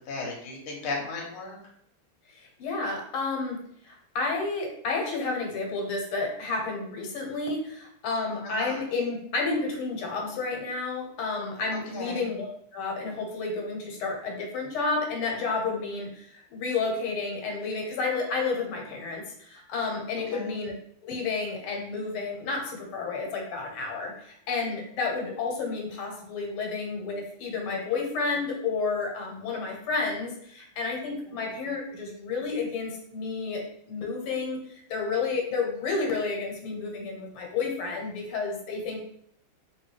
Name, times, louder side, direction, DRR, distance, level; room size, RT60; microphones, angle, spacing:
voice 1, 0.1-1.6 8.4-8.8 11.9-12.2 20.3-20.5, left 3 dB, 50° left, -2 dB, 1.0 m, -35 dB
voice 2, 2.3-3.6 3.8-12.5 12.7-20.7 21.0-34.6 34.9-39.0, left 4 dB, 80° left, 0 dB, 1.7 m, -31 dB
3.3 x 3.0 x 3.2 m, 0.69 s
omnidirectional pair, 2.4 m